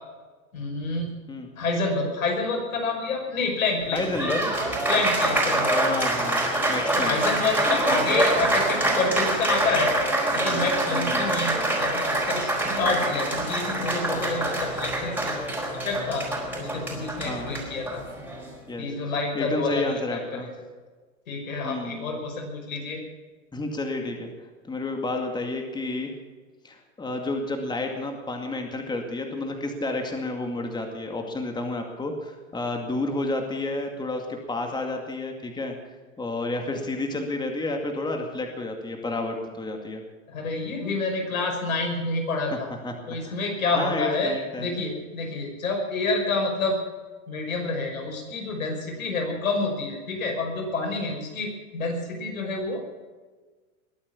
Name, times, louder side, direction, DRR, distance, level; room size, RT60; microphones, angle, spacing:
voice 1, 0.5-1.1 1.6-4.3 4.9-5.8 6.9-9.9 10.3-15.3 15.7-16.3 16.6-18.0 18.8-20.4 21.3-23.0 40.3-42.7 43.1-46.8 47.3-52.8, left 3 dB, 90° left, 2 dB, 5.7 m, -28 dB
Applause, 3.8-18.5, right 1 dB, 5° right, 4.4 m, -26 dB
voice 2, 3.9-4.5 5.7-7.2 10.9-11.3 17.2-17.5 18.7-20.5 21.6-22.2 23.5-26.1 26.6-40.0 42.5-42.6 42.8-43.0 43.3-43.4 43.7-44.8, left 2 dB, 10° left, 3 dB, 2.2 m, -31 dB
21.5 x 8.8 x 7.2 m, 1.3 s
hypercardioid pair, 120°, 40 cm